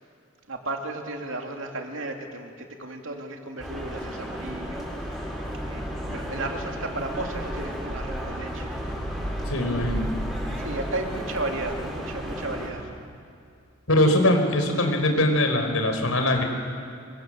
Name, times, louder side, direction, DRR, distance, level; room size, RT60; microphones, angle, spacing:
voice 1, 0.5-5.3 5.6-8.7 10.6-12.8, right 2 dB, 70° right, 3 dB, 2.8 m, -34 dB
sound 1, 3.6-12.7, equal, ahead, 6.9 m, -33 dB
voice 2, 9.5-10.1 13.9-16.4, left 1 dB, 90° left, 5 dB, 4.4 m, -22 dB
27.0 x 24.0 x 7.8 m, 2.3 s
head